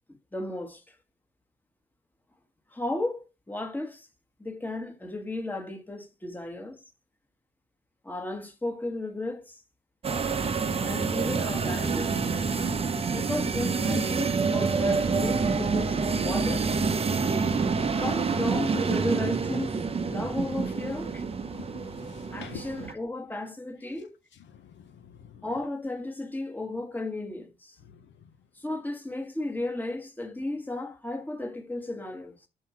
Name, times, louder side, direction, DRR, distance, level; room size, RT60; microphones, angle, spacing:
voice 1, 0.1-0.9 2.7-4.1 4.4-6.8 8.0-9.6 10.8-12.2 13.1-16.7 17.7-21.2 22.3-24.2 25.4-27.8 28.6-32.4, left 2 dB, 10° left, 1.4 m, -34 dB
sound 1, 10.0-22.9, right 5 dB, 30° right, 0.7 m, -27 dB
voice 2, 21.5-22.9 25.1-25.4, left 9 dB, 65° left, 0.8 m, -46 dB
5.6 x 4.6 x 5.7 m
cardioid pair, 90°, 20 cm